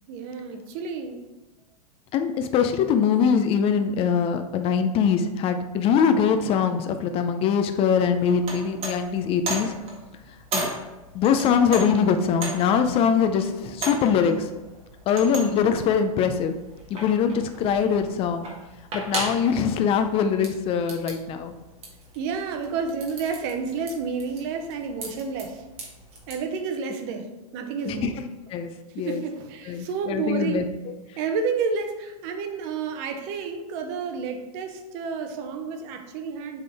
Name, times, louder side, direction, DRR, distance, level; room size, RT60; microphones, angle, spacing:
voice 1, 0.1-1.3 22.1-25.6 26.3-28.2 29.0-30.7 31.2-36.6, right 5 dB, 45° right, 6 dB, 0.9 m, -30 dB
voice 2, 2.1-9.8 10.5-10.7 11.1-14.5 15.1-16.5 16.9-18.5 18.9-21.5 27.8-28.1 28.5-29.2 29.7-30.6, left 7 dB, 30° left, 8 dB, 0.6 m, -22 dB
sound 1, 8.0-26.4, right 2 dB, 30° right, 1.7 m, -37 dB
7.5 x 3.7 x 3.5 m, 1.1 s
hypercardioid pair, 125°, 19 cm